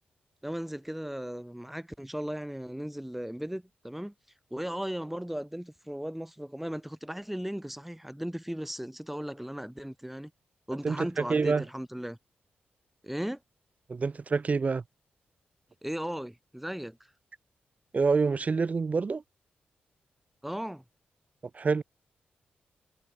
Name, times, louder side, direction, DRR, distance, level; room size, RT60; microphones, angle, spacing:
voice 1, 0.4-4.1 4.5-10.3 10.7-12.2 13.0-13.4 15.8-17.0 20.4-20.8, equal, 5° right, 2.0 m, -36 dB
voice 2, 10.8-11.6 13.9-14.8 17.9-19.2 21.5-21.8, right 4 dB, 40° right, 0.6 m, -27 dB
cardioid pair, 60°, 4 cm